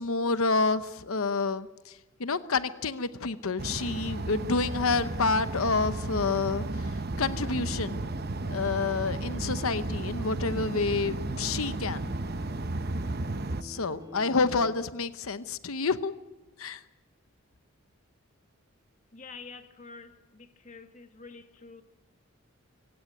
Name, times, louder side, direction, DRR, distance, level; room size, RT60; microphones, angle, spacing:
voice 1, 0.0-6.8 7.2-8.0 8.4-12.1 13.6-16.1 16.6-16.8, left 4 dB, 80° left, 0.9 m, -29 dB
sound 1, 3.6-13.6, right 2 dB, 45° right, 0.8 m, -34 dB
sound 2, 6.7-14.7, left 1 dB, 20° right, 2.0 m, -47 dB
voice 2, 19.1-21.8, left 4 dB, 35° left, 1.6 m, -47 dB
25.5 x 17.0 x 9.4 m
head